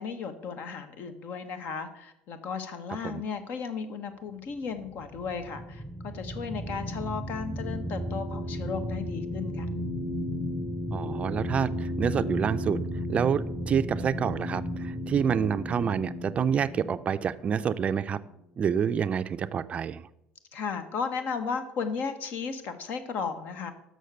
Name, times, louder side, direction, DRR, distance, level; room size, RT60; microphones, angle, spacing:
voice 1, 0.0-9.7 20.5-23.7, left 5 dB, 60° left, 10 dB, 1.1 m, -35 dB
sound 1, 4.6-18.3, equal, 10° left, 0.8 m, -34 dB
voice 2, 10.9-12.8 13.1-18.2 18.6-20.1, right 7 dB, 35° right, 13 dB, 0.4 m, -28 dB
6.5 x 6.3 x 6.7 m, 0.83 s
supercardioid pair, 105°, 4 cm